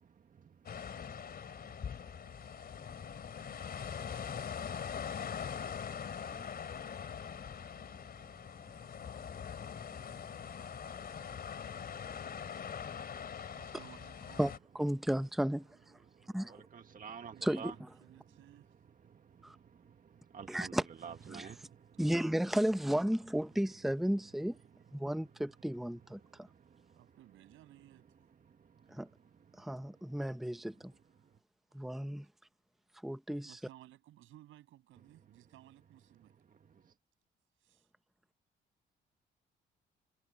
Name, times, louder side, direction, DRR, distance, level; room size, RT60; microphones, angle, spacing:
sound 1, 0.7-14.6, left 7 dB, 50° left, 3.0 m, -42 dB
voice 1, 9.8-10.1 12.4-12.5 16.4-17.7 19.1-19.5 19.8-22.0 26.5-26.9, right 7 dB, 45° right, 1.8 m, -50 dB
voice 2, 13.5-14.6 17.3-18.7 21.1-21.2 21.7-22.2 26.9-28.3 31.7-31.8 33.4-36.3 37.6-37.9, right 14 dB, 85° right, 7.6 m, -59 dB
voice 3, 14.4-15.7 16.3-16.6 17.4-17.9 19.4-19.5 20.5-20.9 21.3-21.5 22.0-24.6 24.9-26.5 28.9-29.1 29.6-30.9 31.7-32.3 33.0-33.5, equal, ahead, 0.8 m, -34 dB
cardioid pair, 90°, 20 cm